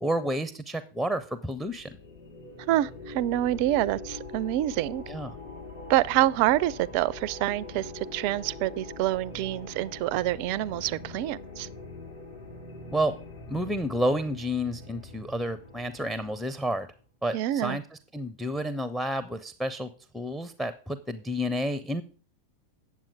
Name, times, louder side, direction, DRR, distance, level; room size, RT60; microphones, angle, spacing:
voice 1, 0.0-2.0 5.1-5.4 12.9-13.1 13.5-16.9 17.2-17.8 18.1-22.0, equal, ahead, 0.6 m, -30 dB
sound 1, 1.4-16.9, left 3 dB, 65° left, 2.0 m, -43 dB
voice 2, 2.7-5.0 5.9-11.7 17.3-17.8, right 15 dB, 45° right, 0.4 m, -27 dB
9.1 x 7.3 x 4.8 m
figure-of-eight pair, 90°, 0 cm